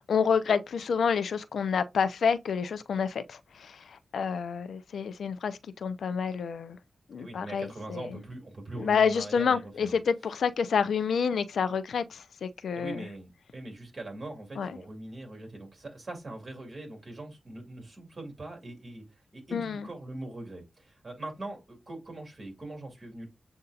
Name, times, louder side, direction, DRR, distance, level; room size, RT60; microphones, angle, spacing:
voice 1, 0.1-6.8 7.1-8.1 8.8-13.0 14.6-14.7 19.5-19.8, left 6 dB, 85° left, 0.5 m, -28 dB
voice 2, 7.2-10.0 12.7-23.3, right 2 dB, 45° right, 2.8 m, -42 dB
7.7 x 2.7 x 2.4 m
cardioid pair, 60°, 0 cm